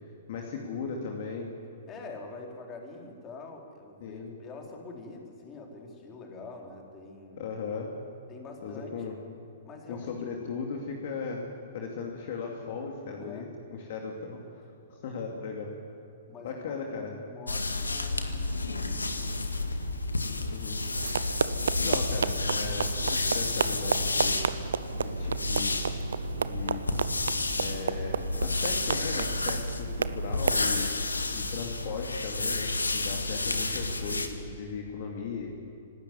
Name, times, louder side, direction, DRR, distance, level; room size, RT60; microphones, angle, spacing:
voice 1, 0.3-1.5 4.0-4.3 7.4-7.9 8.6-9.2 9.9-14.4 14.9-15.7 16.4-17.2 20.4-20.8 21.8-24.4 25.0-25.8 26.4-26.8 27.6-30.9 31.3-35.5, left 5 dB, 45° left, 1 dB, 2.6 m, -37 dB
voice 2, 1.8-7.5 8.3-9.1 9.6-10.4 13.1-13.5 16.3-19.7 28.3-28.6 31.3-31.5, left 3 dB, 20° left, 1 dB, 3.9 m, -46 dB
sound 1, 17.5-34.3, left 2 dB, 75° left, 1.8 m, -31 dB
sound 2, 20.9-30.7, right 6 dB, 60° right, 0.8 m, -32 dB
26.0 x 13.0 x 9.7 m, 2.9 s
figure-of-eight pair, 110°, 0 cm